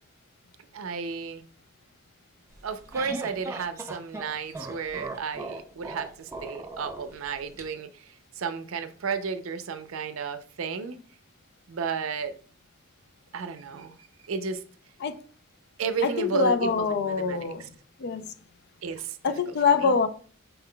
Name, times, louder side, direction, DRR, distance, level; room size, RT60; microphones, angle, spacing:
voice 1, 0.7-1.4 2.6-7.9 8.4-11.0 11.7-12.3 13.3-13.9 14.3-14.6 15.8-17.7 18.8-19.2 19.8-19.9, right 5 dB, 75° right, 0.5 m, -33 dB
sound 1, 2.5-7.6, right 2 dB, 15° right, 0.4 m, -39 dB
voice 2, 16.0-17.7 18.0-18.2 19.2-20.1, left 5 dB, 50° left, 0.4 m, -24 dB
5.5 x 3.7 x 2.2 m
head